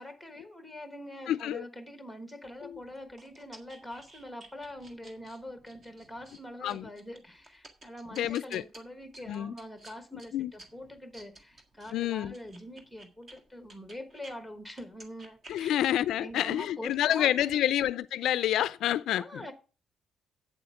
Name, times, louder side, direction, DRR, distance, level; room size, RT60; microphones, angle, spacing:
voice 1, 0.0-15.8 16.2-17.7 19.1-19.5, left 1 dB, ahead, 1.3 m, -44 dB
voice 2, 1.3-1.6 2.6-2.7 6.6-6.9 8.1-8.6 9.3-9.5 10.3-10.5 11.9-12.3 15.5-19.4, left 12 dB, 70° left, 0.4 m, -28 dB
sound 1, 2.4-14.3 14.7-16.1, right 2 dB, 25° right, 1.6 m, -55 dB
8.3 x 7.9 x 5.8 m
cardioid pair, 180°, 0 cm